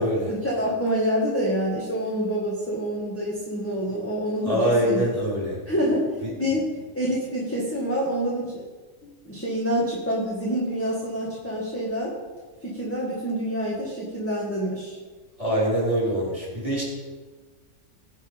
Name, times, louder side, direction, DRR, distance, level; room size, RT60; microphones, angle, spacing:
voice 1, 0.3-5.0 5.7-6.1 6.4-6.7 6.9-8.6 9.0-12.1 12.6-15.0, equal, 10° left, -5 dB, 2.0 m, -27 dB
voice 2, 4.4-5.6 6.2-6.3 15.4-16.8, equal, 20° right, -5 dB, 4.8 m, -24 dB
19.0 x 6.5 x 5.4 m, 1.4 s
omnidirectional pair, 1.7 m